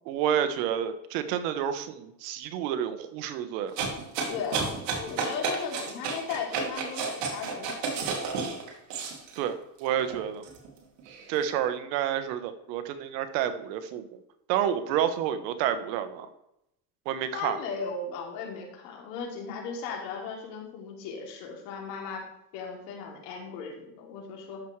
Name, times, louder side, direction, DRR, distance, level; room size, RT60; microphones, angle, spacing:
voice 1, 0.1-3.7 9.3-10.4 11.3-14.1 14.5-16.3 17.1-17.6, right 9 dB, 80° right, 9 dB, 1.2 m, -29 dB
sound 1, 3.8-9.4 9.9-11.3, right 4 dB, 60° right, 2.4 m, -32 dB
voice 2, 4.3-8.1 17.3-22.2 22.5-24.6, left 5 dB, 75° left, -1 dB, 3.0 m, -37 dB
13.0 x 6.0 x 3.2 m, 0.82 s
cardioid pair, 150°, 49 cm